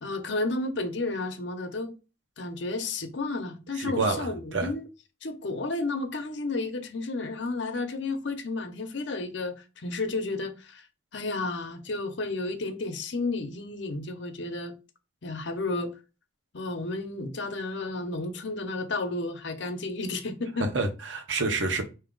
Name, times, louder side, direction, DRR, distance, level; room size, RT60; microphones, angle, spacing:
voice 1, 0.0-1.9 2.4-4.9 5.2-10.9 11.1-14.7 15.2-15.9 16.5-20.7, left 2 dB, 65° left, 0.7 m, -32 dB
voice 2, 3.8-4.7 20.7-21.8, right 3 dB, 80° right, 1.0 m, -28 dB
4.7 x 2.8 x 3.8 m
head